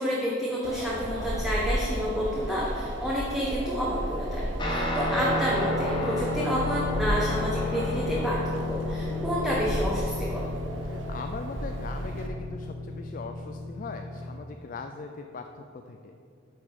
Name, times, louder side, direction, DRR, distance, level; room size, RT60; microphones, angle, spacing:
voice 1, 0.0-10.5, equal, ahead, -6 dB, 0.9 m, -29 dB
Wind, 0.6-12.3, right 1 dB, 80° right, 0.9 m, -34 dB
Guitar, 4.6-14.3, left 2 dB, 25° left, 1.2 m, -32 dB
voice 2, 10.8-16.1, left 4 dB, 45° left, 5 dB, 0.3 m, -40 dB
8.4 x 5.3 x 5.2 m, 2.5 s
head